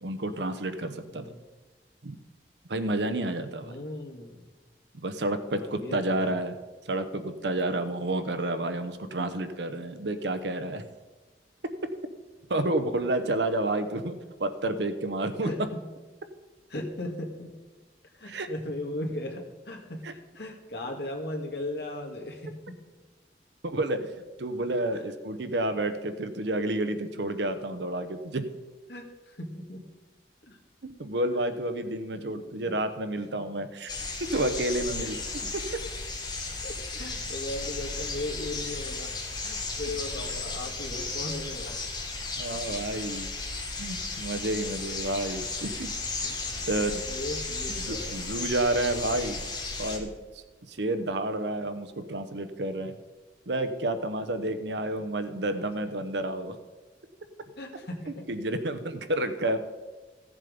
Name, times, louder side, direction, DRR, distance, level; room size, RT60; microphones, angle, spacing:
voice 1, 0.0-1.2 2.0-2.2 2.7-3.7 4.9-6.6 6.9-10.8 12.5-15.5 18.3-18.5 20.0-20.1 23.6-24.1 24.4-28.4 30.8-33.9 34.3-35.2 35.5-35.8 42.3-43.3 43.8-45.9 46.2-46.3 46.7-47.0 47.7-49.4 49.8-50.4 50.7-53.0 53.5-56.6 58.3-59.6, right 1 dB, 75° right, 10 dB, 0.9 m, -30 dB
voice 2, 1.1-1.4 3.6-4.5 5.5-6.4 15.4-15.8 16.7-17.5 18.2-22.8 24.9-25.0 28.9-29.8 30.5-30.6 32.3-32.7 35.0-35.1 36.6-39.1 39.4-41.9 46.2-46.7 47.1-48.2 57.6-58.3 59.2-59.5, left 1 dB, 70° left, 1 dB, 2.0 m, -37 dB
sound 1, 33.9-50.0, left 3 dB, 25° left, 1.3 m, -35 dB
14.5 x 7.3 x 5.2 m, 1.3 s
head